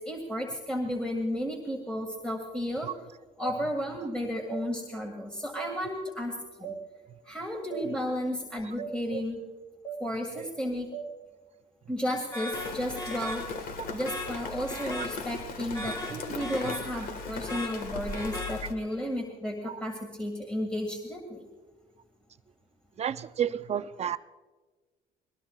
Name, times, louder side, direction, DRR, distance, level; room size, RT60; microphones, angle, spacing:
voice 1, 0.0-2.9 3.4-6.7 7.3-9.4 10.0-10.9 11.9-13.4 13.9-21.5, equal, 5° left, 1 dB, 1.9 m, -33 dB
sound 1, 3.4-3.6 4.5-4.6 5.6-5.7 6.6-6.8 7.7-7.9 8.8-8.9 9.8-10.0 10.9-11.1, right 7 dB, 40° left, 3.3 m, -37 dB
sound 2, 12.3-19.0, left 1 dB, 20° left, 3.9 m, -40 dB
Rain, 12.5-18.7, left 4 dB, 55° left, 1.6 m, -38 dB
voice 2, 23.0-24.2, right 9 dB, 40° right, 12 dB, 0.6 m, -31 dB
21.0 x 19.0 x 2.4 m, 1.2 s
cardioid pair, 110°, 17 cm